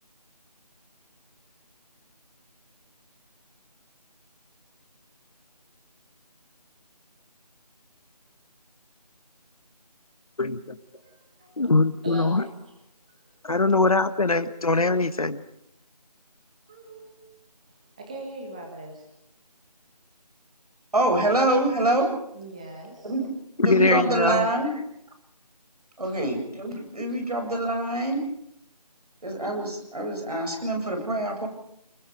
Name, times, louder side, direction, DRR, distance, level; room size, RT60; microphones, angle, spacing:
voice 1, 10.4-10.8 11.6-12.4 13.4-15.4 23.6-24.5, left 3 dB, 60° left, 11 dB, 1.5 m, -22 dB
voice 2, 10.9-11.7 12.0-12.7 14.8-14.9 16.7-17.1 18.0-19.1 22.3-23.1 26.0-26.2 27.1-27.2, right 2 dB, 10° right, 1 dB, 1.6 m, -41 dB
voice 3, 20.9-22.1 23.0-23.3 23.6-24.7 26.0-28.2 29.2-31.5, right 1 dB, 65° right, 4 dB, 7.9 m, -25 dB
28.5 x 20.5 x 5.2 m, 0.74 s
figure-of-eight pair, 175°, 21 cm